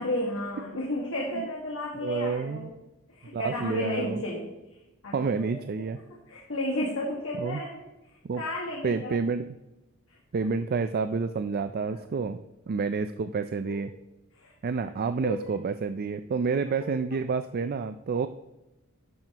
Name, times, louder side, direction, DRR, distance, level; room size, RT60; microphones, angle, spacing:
voice 1, 0.0-2.7 3.1-4.5 5.0-5.5 6.3-7.8 8.3-9.2 10.1-10.2 11.9-12.0 13.6-13.8 14.3-14.5 15.2-15.5 16.8-16.9, left 1 dB, 70° left, -3 dB, 1.7 m, -33 dB
voice 2, 2.0-2.7 3.3-4.2 5.1-6.0 7.4-7.6 8.2-8.4 8.8-9.5 10.3-12.4 12.7-13.9 14.6-18.3, right 5 dB, 45° right, 11 dB, 0.4 m, -29 dB
12.0 x 8.8 x 2.9 m, 0.98 s
head